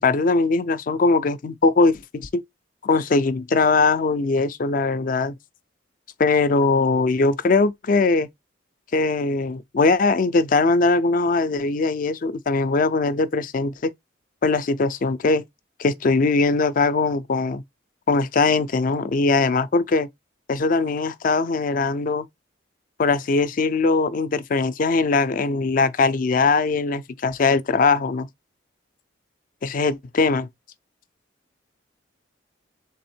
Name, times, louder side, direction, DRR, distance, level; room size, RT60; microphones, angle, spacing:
voice 1, 0.0-2.4 2.8-5.3 6.2-8.3 8.9-13.9 14.4-15.4 15.8-17.6 18.1-20.1 20.5-22.3 23.0-28.3 29.6-30.5, left 3 dB, 45° left, 0.4 m, -21 dB
3.5 x 3.4 x 4.3 m
head